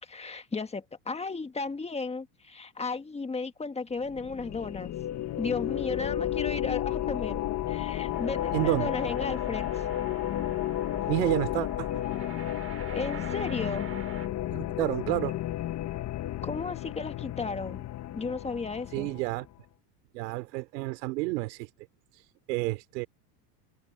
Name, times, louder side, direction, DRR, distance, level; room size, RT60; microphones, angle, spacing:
voice 1, 0.0-4.9 5.4-7.4 7.7-9.7 12.9-13.9 16.4-17.8 18.1-19.1, left 4 dB, 15° left, 1.5 m, -34 dB
sound 1, 4.0-19.5, left 13 dB, 35° left, 1.1 m, -32 dB
sound 2, 8.1-14.3, right 8 dB, 30° right, 4.2 m, -46 dB
voice 2, 8.5-8.9 11.1-11.9 14.5-15.4 18.9-19.5 20.1-21.7 22.1-23.1, right 22 dB, 75° right, 3.0 m, -30 dB
supercardioid pair, 120°, 49 cm